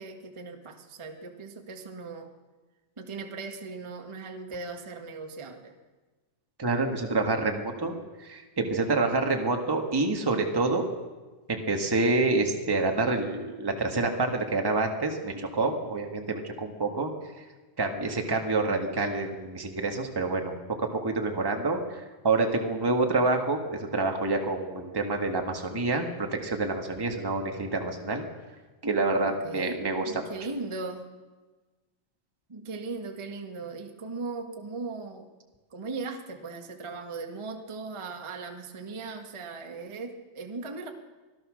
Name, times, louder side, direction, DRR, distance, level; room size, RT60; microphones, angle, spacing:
voice 1, 0.0-2.3 3.0-5.7 27.0-27.1 29.3-31.1 32.5-35.3 35.7-40.9, right 3 dB, 50° right, 3 dB, 0.3 m, -38 dB
voice 2, 6.6-10.8 11.5-17.4 17.8-28.2 28.8-30.0, right 3 dB, 15° right, 3 dB, 0.9 m, -27 dB
25.0 x 16.0 x 6.5 m, 1.3 s
omnidirectional pair, 3.8 m